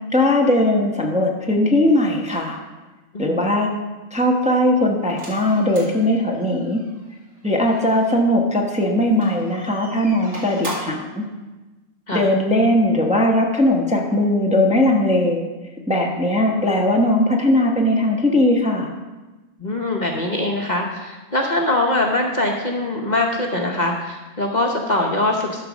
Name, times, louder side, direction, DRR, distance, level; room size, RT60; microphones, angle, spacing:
voice 1, 0.1-2.6 3.2-3.7 4.1-6.8 7.4-11.2 12.1-15.4 15.9-18.9, left 1 dB, 5° right, 0 dB, 0.9 m, -19 dB
voice 2, 3.1-3.4 12.1-12.2 19.6-25.6, left 2 dB, 40° left, 0 dB, 1.0 m, -22 dB
sound 1, 5.1-8.1 9.1-11.1, right 1 dB, 80° right, 2.7 m, -37 dB
12.0 x 4.6 x 6.2 m, 1.2 s
omnidirectional pair, 1.3 m